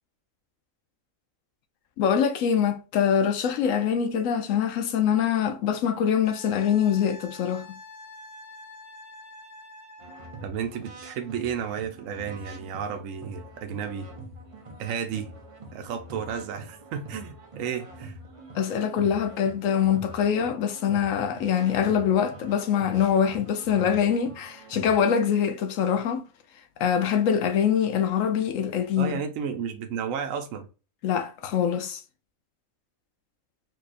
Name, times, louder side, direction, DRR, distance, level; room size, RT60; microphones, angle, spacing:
voice 1, 2.0-7.7 18.5-26.3 26.8-29.2 31.0-32.0, left 8 dB, 70° left, 0.9 m, -24 dB
Wind instrument woodwind instrument, 6.2-10.5 13.2-13.3, left 2 dB, 35° left, 1.1 m, -46 dB
sound 1, 10.0-25.0, right 2 dB, 35° right, 0.5 m, -45 dB
voice 2, 10.4-14.1 14.8-15.3 15.7-18.2 29.0-30.7, right 7 dB, 70° right, 1.0 m, -32 dB
4.6 x 2.8 x 2.5 m
omnidirectional pair, 1.5 m